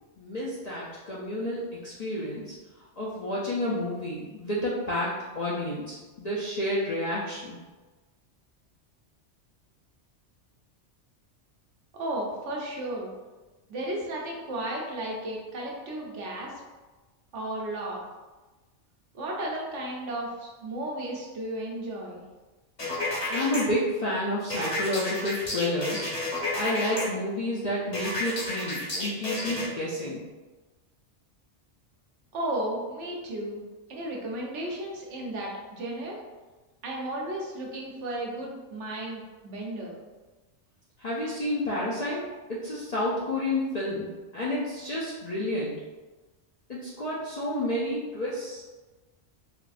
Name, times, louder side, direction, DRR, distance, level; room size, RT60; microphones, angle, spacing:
voice 1, 0.2-2.5 3.0-7.6 23.3-26.1 26.5-30.2 41.0-45.8 46.7-48.6, left 1 dB, 55° left, -7 dB, 0.4 m, -30 dB
voice 2, 11.9-13.1 13.7-16.5 17.3-18.0 19.1-22.2 32.3-33.6 33.9-36.2 36.8-39.9, right 1 dB, 80° right, -2 dB, 1.0 m, -34 dB
sound 1, 22.8-23.6 24.5-27.0 27.9-29.7, left 2 dB, 40° left, 0.8 m, -31 dB
3.4 x 2.5 x 2.4 m, 1.2 s
omnidirectional pair, 1.2 m